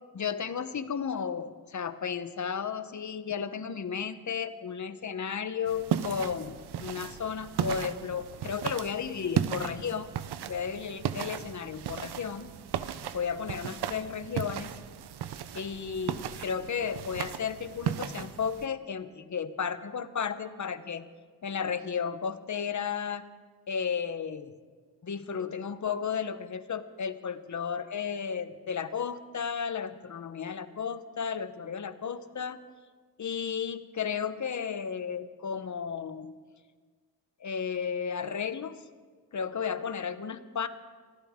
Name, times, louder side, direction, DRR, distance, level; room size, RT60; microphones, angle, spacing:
voice 1, 0.1-10.1 10.5-12.5 13.1-14.7 15.5-21.1 21.4-23.2 23.7-24.6 25.0-32.6 33.2-36.4 37.4-38.8 39.3-40.7, left 7 dB, 50° left, 11 dB, 1.0 m, -33 dB
sound 1, 5.7-18.7, right 9 dB, 80° right, 0.8 m, -35 dB
24.5 x 15.0 x 3.7 m, 1.5 s
wide cardioid pair, 100°, 39 cm